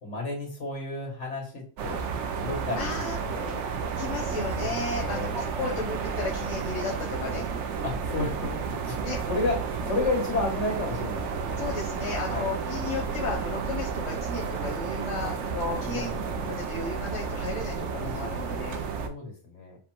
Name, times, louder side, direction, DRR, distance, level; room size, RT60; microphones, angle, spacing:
voice 1, 0.0-2.0 2.4-3.6 4.1-4.5 5.0-5.9 7.8-8.6 8.9-11.6 12.3-12.5 15.2-15.3 15.7-16.5 18.0-18.6 19.0-19.8, left 2 dB, 65° left, 0 dB, 1.8 m, -33 dB
sound 1, 1.8-19.1, right 5 dB, 70° right, 0.9 m, -32 dB
voice 2, 2.8-3.2 4.0-7.4 9.0-9.2 11.6-18.8, left 4 dB, 90° left, -1 dB, 1.2 m, -34 dB
5.1 x 2.2 x 4.5 m, 0.40 s
omnidirectional pair, 1.3 m